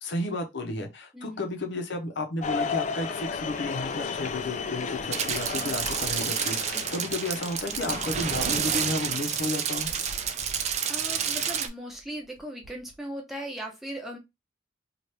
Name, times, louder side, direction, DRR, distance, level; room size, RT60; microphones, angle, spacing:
voice 1, 0.0-9.9, left 2 dB, 65° left, 0.7 m, -32 dB
voice 2, 1.1-1.5 5.6-5.8 6.7-6.8 10.9-14.2, right 1 dB, ahead, 0.8 m, -38 dB
sound 1, 2.4-8.7, left 5 dB, 40° left, 0.3 m, -34 dB
sound 2, 5.1-11.7, right 7 dB, 35° right, 0.4 m, -29 dB
sound 3, 5.4-6.5 7.4-8.9 9.6-11.0 11.8-13.0, right 1 dB, 85° right, 0.8 m, -45 dB
2.9 x 2.4 x 3.3 m
head